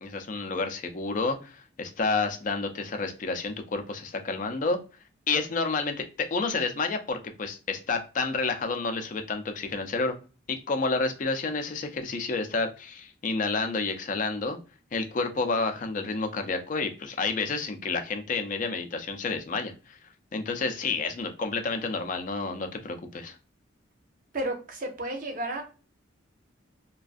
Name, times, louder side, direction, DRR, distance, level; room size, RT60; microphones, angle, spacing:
voice 1, 0.0-4.8 5.3-10.1 10.5-14.6 14.9-20.0 20.3-23.4, left 3 dB, 40° left, 6 dB, 0.4 m, -30 dB
voice 2, 24.3-25.6, right 1 dB, 45° right, 4 dB, 0.5 m, -32 dB
2.5 x 2.2 x 2.4 m, 0.35 s
head